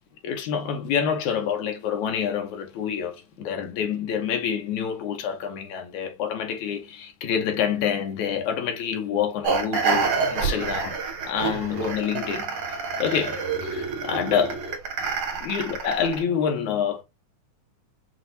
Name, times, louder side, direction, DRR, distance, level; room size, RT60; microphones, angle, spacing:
voice 1, 0.2-10.9 11.3-12.6 13.0-14.7 15.4-17.0, left 7 dB, 75° left, 2.3 m, -27 dB
sound 1, 9.4-16.2, right 5 dB, 60° right, 2.2 m, -28 dB
6.1 x 2.6 x 2.7 m
omnidirectional pair, 3.6 m